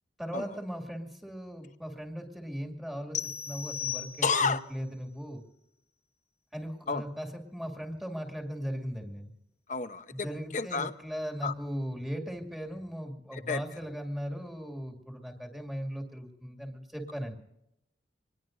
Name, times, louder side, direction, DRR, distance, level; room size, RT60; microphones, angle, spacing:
voice 1, 0.2-5.4 6.5-9.3 10.1-17.4, equal, ahead, 1 dB, 2.3 m, -38 dB
sound 1, 3.1-4.7, left 9 dB, 80° left, 1.3 m, -36 dB
voice 2, 4.2-4.6 6.9-7.0 9.7-10.9 11.4-11.5 13.3-13.6, left 5 dB, 45° left, 10 dB, 0.9 m, -30 dB
26.0 x 20.5 x 2.6 m, 0.86 s
head